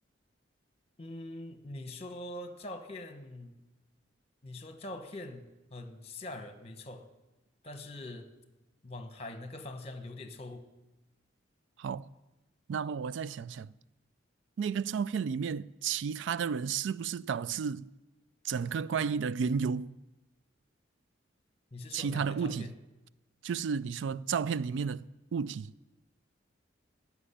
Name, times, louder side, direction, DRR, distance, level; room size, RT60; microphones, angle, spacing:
voice 1, 1.0-3.6 4.4-7.1 7.6-8.3 8.8-10.6 21.7-22.7, left 1 dB, 35° left, 1.3 m, -43 dB
voice 2, 11.8-12.1 12.7-13.7 14.6-17.9 18.4-20.0 21.9-22.7 23.4-25.1 25.3-25.7, right 6 dB, 75° right, 0.3 m, -32 dB
15.5 x 6.1 x 9.9 m
head